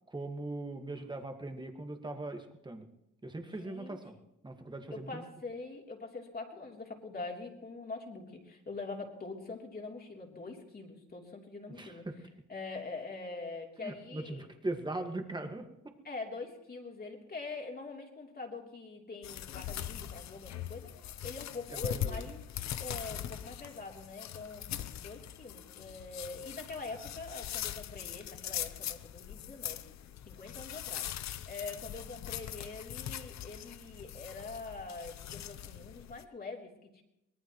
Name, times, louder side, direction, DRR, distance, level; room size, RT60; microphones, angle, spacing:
voice 1, 0.1-2.9 3.2-4.1 4.4-5.3 11.7-12.2 13.8-15.7 21.7-22.3, right 2 dB, 15° right, 5 dB, 1.8 m, -40 dB
voice 2, 3.6-4.2 4.9-12.1 12.5-14.5 16.0-22.5 22.8-30.0 30.2-31.1 31.4-37.0, left 3 dB, 30° left, 0 dB, 3.3 m, -44 dB
sound 1, 19.2-36.2, left 11 dB, 65° left, 0.7 m, -41 dB
24.0 x 18.5 x 3.1 m, 0.89 s
cardioid pair, 90°, 30 cm